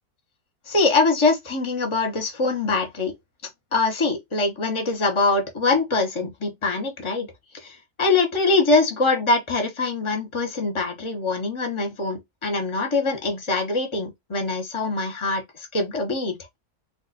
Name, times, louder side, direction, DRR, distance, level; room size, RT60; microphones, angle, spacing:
voice 1, 0.7-3.1 3.7-7.3 7.6-16.4, left 3 dB, 25° left, 0.7 m, -23 dB
2.5 x 2.4 x 4.0 m
omnidirectional pair, 1.6 m